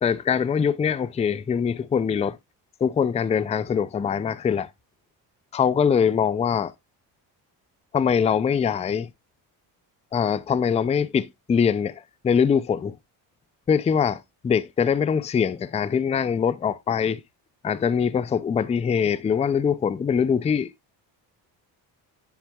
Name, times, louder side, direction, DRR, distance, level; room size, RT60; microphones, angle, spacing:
voice 1, 0.0-2.4 2.8-4.7 5.5-6.7 7.9-9.1 10.1-12.9 13.7-17.2 17.6-20.7, left 7 dB, 15° left, 0.3 m, -23 dB
10.0 x 4.5 x 2.3 m
cardioid pair, 90°, 42 cm